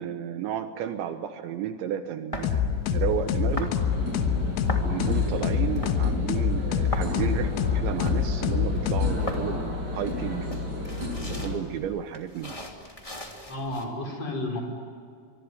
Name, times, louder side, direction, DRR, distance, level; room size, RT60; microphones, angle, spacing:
voice 1, 0.0-3.8 4.8-10.6 11.3-12.6, right 9 dB, 75° right, 8 dB, 3.2 m, -32 dB
sound 1, 2.3-13.8, left 1 dB, 10° left, 1.5 m, -39 dB
sound 2, 2.4-9.6, left 7 dB, 80° left, 3.7 m, -26 dB
sound 3, 3.0-11.6, left 2 dB, 20° right, 6.7 m, -33 dB
voice 2, 5.3-5.6 13.5-14.6, left 2 dB, 30° left, 0 dB, 6.2 m, -33 dB
24.5 x 24.5 x 9.7 m, 2.3 s
omnidirectional pair, 5.6 m